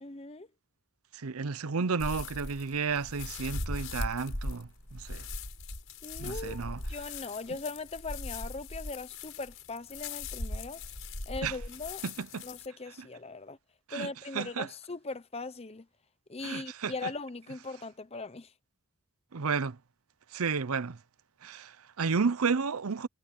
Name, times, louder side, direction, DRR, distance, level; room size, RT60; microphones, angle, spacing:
voice 1, 0.0-0.5 6.0-10.8 11.3-12.0 12.4-13.6 13.9-15.9 16.3-18.5, left 3 dB, 30° left, 0.8 m, -40 dB
voice 2, 1.1-5.2 6.2-6.8 11.4-11.6 12.0-12.4 13.9-14.7 16.4-17.1 19.3-19.8 20.3-21.0 21.4-23.1, right 5 dB, 85° right, 0.7 m, -32 dB
sound 1, 2.0-12.7, left 2 dB, 65° left, 5.3 m, -39 dB
head